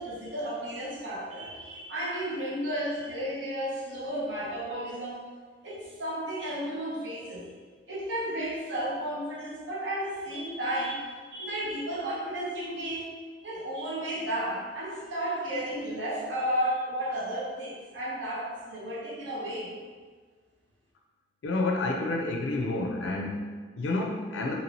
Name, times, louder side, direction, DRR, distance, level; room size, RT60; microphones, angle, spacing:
voice 1, 0.0-5.3 5.6-7.5 7.9-13.2 13.4-19.7, right 1 dB, 85° right, -6 dB, 0.8 m, -33 dB
voice 2, 21.4-24.6, left 2 dB, 85° left, 1 dB, 0.4 m, -29 dB
2.9 x 2.7 x 3.0 m, 1.5 s
head